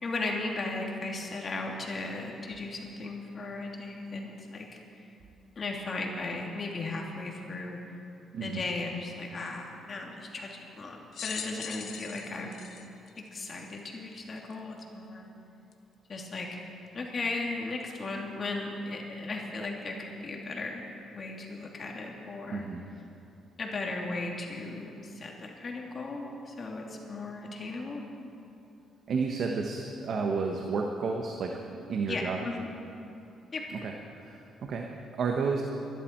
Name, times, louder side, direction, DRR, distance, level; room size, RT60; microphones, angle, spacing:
voice 1, 0.0-4.7 5.6-8.0 8.4-12.6 13.3-15.3 16.1-16.6 16.9-20.8 21.1-22.6 23.6-28.0 32.1-32.7 33.5-33.6, left 3 dB, 40° left, 0 dB, 2.7 m, -36 dB
voice 2, 8.3-8.7 22.5-22.8 29.1-31.6 31.9-32.4 33.7-35.6, right 4 dB, 60° right, 2 dB, 1.2 m, -31 dB
sound 1, 11.1-13.8 14.5-14.6 15.7-15.8, left 7 dB, 65° left, 1.1 m, -41 dB
23.0 x 12.0 x 4.6 m, 2.7 s
cardioid pair, 90°, 0 cm